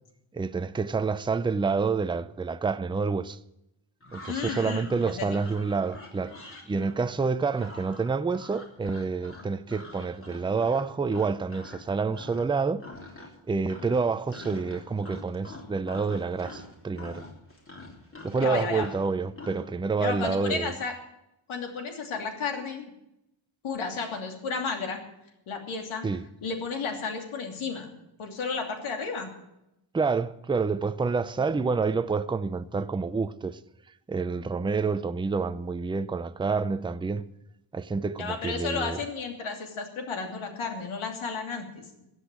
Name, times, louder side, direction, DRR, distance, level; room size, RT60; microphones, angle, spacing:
voice 1, 0.3-3.4 4.1-6.3 6.7-12.8 13.5-17.2 18.2-20.7 26.0-26.2 29.9-33.6 34.1-37.3 37.7-39.0, right 4 dB, 10° right, 0.5 m, -28 dB
sound 1, 4.0-11.8 12.1-12.5 12.8-13.4 13.7-19.7, left 2 dB, 25° left, 3.4 m, -45 dB
voice 2, 4.3-5.4 18.4-18.9 20.0-20.9 21.5-22.9 23.6-25.0 25.5-26.1 26.4-27.9 28.2-29.3 38.2-42.0, left 4 dB, 75° left, 3.0 m, -33 dB
15.0 x 8.2 x 9.0 m
cardioid pair, 105°, 49 cm